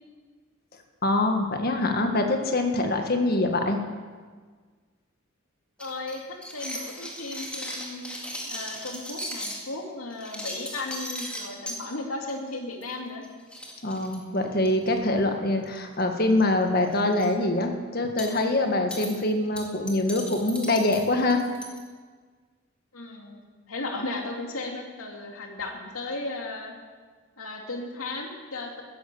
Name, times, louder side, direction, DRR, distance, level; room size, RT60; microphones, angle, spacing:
voice 1, 1.0-3.8 13.8-21.4, left 2 dB, 45° left, 4 dB, 1.6 m, -24 dB
voice 2, 5.8-8.2 8.4-13.2 22.9-23.4 23.7-26.7 27.4-28.8, left 2 dB, 80° left, 1 dB, 2.7 m, -35 dB
sound 1, 5.8-9.6 10.1-11.8 12.3-12.5 12.8-12.9 13.2-13.3 13.5-14.9 15.6-16.0 16.3-16.5 16.8-17.3 18.2-18.4 18.9-19.1 19.6-21.8, equal, 5° left, 2.1 m, -37 dB
14.0 x 10.5 x 8.5 m, 1.5 s
head